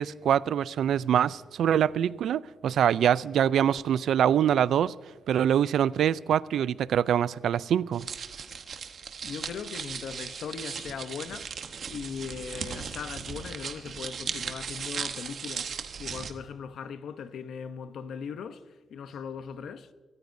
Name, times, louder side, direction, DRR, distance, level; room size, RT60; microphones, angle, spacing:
voice 1, 0.0-4.9 5.3-8.1, right 9 dB, 85° right, 0.3 m, -24 dB
sound 1, 7.9-16.3, right 6 dB, 50° right, 1.0 m, -37 dB
voice 2, 9.2-11.5 11.9-15.7 16.0-19.9, left 6 dB, 75° left, 0.8 m, -39 dB
23.5 x 14.0 x 2.6 m
wide cardioid pair, 175°, 0 cm